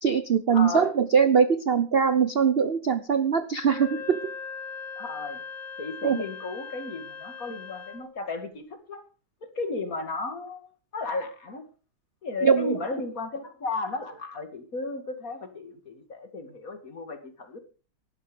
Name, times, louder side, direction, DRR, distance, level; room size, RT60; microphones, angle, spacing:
voice 1, 0.0-4.2 6.0-6.2 12.4-12.8, right 6 dB, 55° right, 12 dB, 0.6 m, -22 dB
voice 2, 0.5-0.9 5.0-5.4 5.8-9.0 9.4-11.6 12.2-17.6, left 3 dB, 40° left, 8 dB, 2.5 m, -34 dB
Wind instrument woodwind instrument, 3.6-8.1, left 5 dB, 25° left, 4.1 m, -40 dB
17.5 x 12.0 x 5.1 m, 0.36 s
omnidirectional pair, 2.3 m